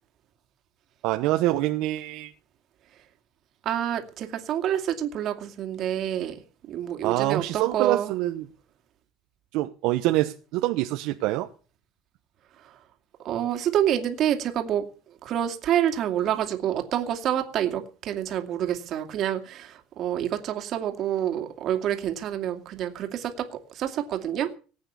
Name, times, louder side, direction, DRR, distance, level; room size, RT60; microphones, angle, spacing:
voice 1, 1.0-2.3 7.0-8.5 9.5-11.5, right 16 dB, 65° right, 6 dB, 1.0 m, -25 dB
voice 2, 3.6-6.4 6.7-8.1 13.2-14.8 15.2-24.5, right 10 dB, 45° right, 5 dB, 2.4 m, -27 dB
19.0 x 8.8 x 7.0 m, 0.39 s
cardioid pair, 150°, 0 cm